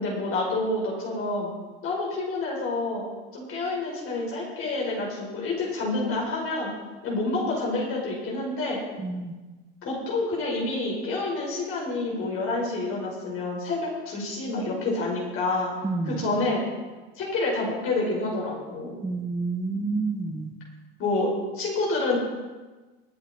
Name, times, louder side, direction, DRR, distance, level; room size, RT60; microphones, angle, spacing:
voice 1, 0.0-1.5 1.8-3.0 3.3-6.7 7.0-8.8 9.8-13.8 14.1-15.7 16.0-16.6 17.2-19.0 21.0-22.2, left 2 dB, 45° left, -3 dB, 5.4 m, -28 dB
voice 2, 9.0-9.3 15.8-16.2 19.0-20.5, right 3 dB, 10° right, 6 dB, 1.1 m, -29 dB
20.5 x 8.4 x 4.6 m, 1.2 s
hypercardioid pair, 100°, 32 cm